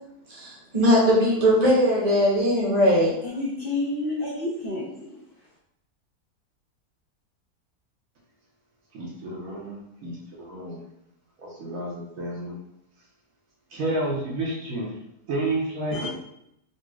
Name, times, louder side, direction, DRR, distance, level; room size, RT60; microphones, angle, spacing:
voice 1, 0.3-3.1, equal, 30° right, -5 dB, 0.9 m, -20 dB
voice 2, 3.2-5.1 15.9-16.1, left 2 dB, 50° left, -6 dB, 0.7 m, -29 dB
voice 3, 8.9-10.8 11.4-12.5 13.7-14.9 15.3-16.1, right 2 dB, 65° right, -3 dB, 1.2 m, -30 dB
4.0 x 2.3 x 2.3 m, 0.79 s
omnidirectional pair, 1.6 m